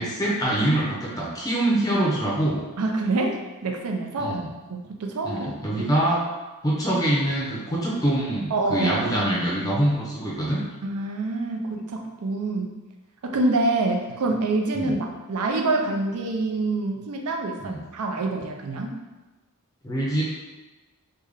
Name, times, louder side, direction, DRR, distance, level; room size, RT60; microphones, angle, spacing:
voice 1, 0.0-2.6 4.2-4.5 5.2-6.2 6.6-10.6 14.7-15.0 17.6-17.8 19.8-20.2, right 1 dB, 15° left, -5 dB, 0.5 m, -24 dB
voice 2, 2.8-5.9 8.5-9.0 10.8-12.8 13.2-19.0, right 2 dB, 75° right, 2 dB, 0.5 m, -26 dB
3.4 x 2.1 x 3.5 m, 1.2 s
head